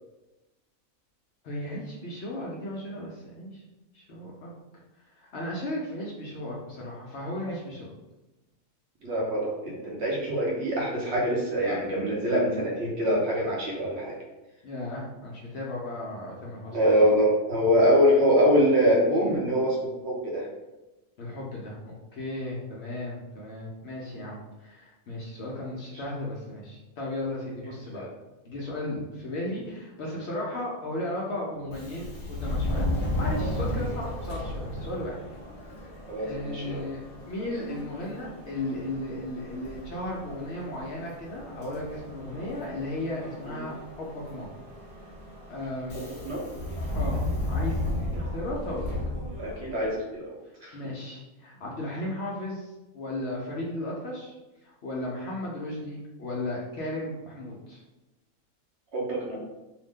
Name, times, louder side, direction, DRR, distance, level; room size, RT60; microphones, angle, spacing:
voice 1, 1.4-3.6 3.9-4.5 5.2-7.9 14.6-16.8 21.2-28.0 28.4-35.2 35.8-37.0 37.3-44.5 45.5-46.0 46.9-48.9 50.7-54.3 54.6-57.8, left 1 dB, 60° left, -4 dB, 0.8 m, -35 dB
voice 2, 9.0-14.2 16.7-20.5 27.9-28.1 36.1-36.8 43.5-43.6 45.9-46.4 49.4-50.4 50.6-50.8 58.9-59.4, equal, 60° right, -3 dB, 0.9 m, -24 dB
Subway metro underground, 31.6-50.0, left 1 dB, 45° left, 1.1 m, -34 dB
2.7 x 2.0 x 3.5 m, 1.0 s
omnidirectional pair, 1.4 m